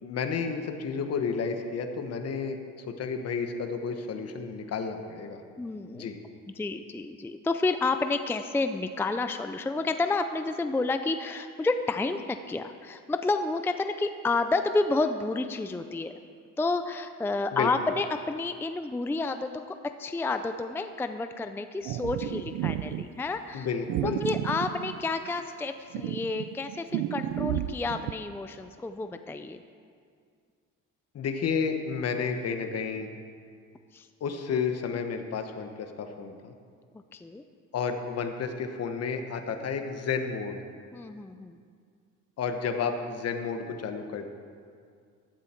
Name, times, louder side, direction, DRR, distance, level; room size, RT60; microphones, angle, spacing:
voice 1, 0.0-2.6 2.9-5.4 5.9-6.2 17.5-17.7 23.5-24.3 31.1-33.1 34.2-36.5 37.7-40.6 42.4-44.3, left 5 dB, 55° left, 6 dB, 1.3 m, -31 dB
voice 2, 5.6-6.1 6.6-16.1 16.6-23.7 24.0-29.6 33.9-34.1 37.1-37.4 40.9-41.6, left 3 dB, 10° left, 8 dB, 0.4 m, -30 dB
sound 1, 21.8-23.0 23.9-25.4 25.9-28.1, right 13 dB, 85° right, 0.5 m, -32 dB
15.0 x 12.0 x 4.5 m, 2.2 s
cardioid pair, 125°, 30 cm